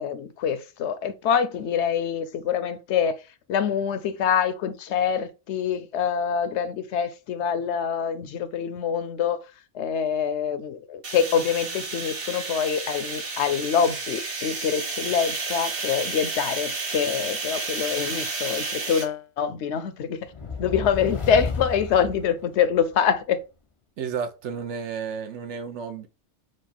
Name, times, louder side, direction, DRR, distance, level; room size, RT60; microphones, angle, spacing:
voice 1, 0.0-3.2 3.5-9.4 9.7-20.2 20.6-23.4, left 7 dB, 80° left, 0.9 m, -25 dB
sound 1, 11.0-19.0, right 3 dB, 55° right, 1.2 m, -31 dB
sound 2, 20.3-23.0, left 5 dB, 35° left, 0.6 m, -32 dB
voice 2, 24.0-26.1, right 6 dB, 85° right, 1.1 m, -32 dB
4.7 x 2.4 x 4.3 m
omnidirectional pair, 1.2 m